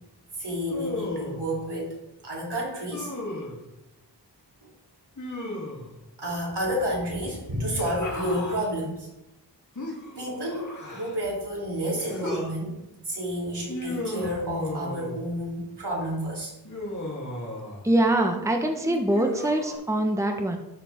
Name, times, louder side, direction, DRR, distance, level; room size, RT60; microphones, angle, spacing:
voice 1, 0.4-1.9 2.2-3.1 4.6-4.7 6.2-9.1 10.2-12.8 13.0-16.5, equal, 75° right, -3 dB, 3.3 m, -30 dB
Human voice, 0.7-1.5 2.9-3.6 5.2-5.9 7.5-8.7 9.8-11.3 12.0-12.5 13.7-15.2 16.7-17.9 18.9-19.7, left 1 dB, 45° left, 3.0 m, -35 dB
voice 2, 17.8-20.6, right 1 dB, 5° right, 3 dB, 1.1 m, -23 dB
12.0 x 6.6 x 3.6 m, 0.91 s
wide cardioid pair, 60°, 41 cm